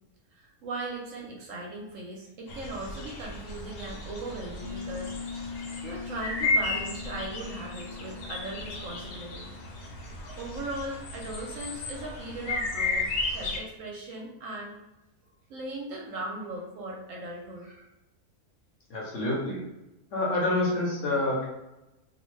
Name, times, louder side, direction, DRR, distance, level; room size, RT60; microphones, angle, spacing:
voice 1, 0.4-5.1 5.8-9.6 10.3-14.8 15.5-17.9, right 2 dB, 65° right, -2 dB, 0.9 m, -38 dB
sound 1, 2.5-13.6, left 3 dB, 90° left, 1.2 m, -34 dB
sound 2, 4.6-10.2, left 5 dB, 10° right, 0.8 m, -42 dB
voice 2, 18.9-19.6 20.1-21.5, left 2 dB, 65° left, -3 dB, 0.9 m, -27 dB
2.6 x 2.1 x 3.1 m, 0.95 s
omnidirectional pair, 1.6 m